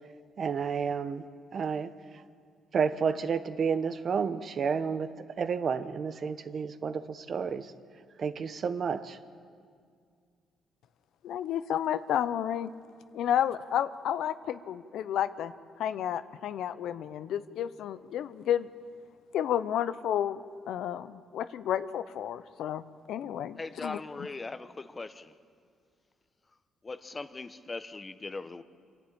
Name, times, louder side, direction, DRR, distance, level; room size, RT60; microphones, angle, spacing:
voice 1, 0.4-1.3 1.5-1.9 2.7-7.7 8.2-9.2, right 6 dB, 50° right, 12 dB, 0.9 m, -31 dB
voice 2, 11.2-12.7 13.1-15.5 15.8-18.7 19.3-20.4 20.7-22.8 23.1-24.0, left 10 dB, 80° left, 13 dB, 0.7 m, -31 dB
voice 3, 23.6-25.3 26.8-28.6, left 3 dB, 25° left, 12 dB, 0.9 m, -40 dB
26.5 x 11.5 x 8.7 m, 2.1 s
cardioid pair, 90°, 0 cm